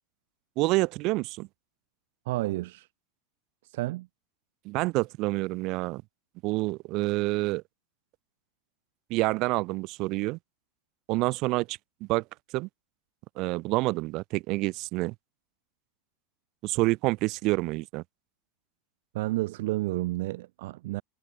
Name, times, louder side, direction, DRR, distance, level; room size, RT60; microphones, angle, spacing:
voice 1, 0.6-1.5 4.6-6.0 6.4-7.6 9.1-10.4 11.1-12.2 12.5-12.7 13.4-15.1 16.6-18.0, right 22 dB, 40° right, 3.3 m, -28 dB
voice 2, 2.3-2.9 3.7-4.1 19.1-21.0, right 18 dB, 65° right, 5.8 m, -30 dB
supercardioid pair, 160°, 0 cm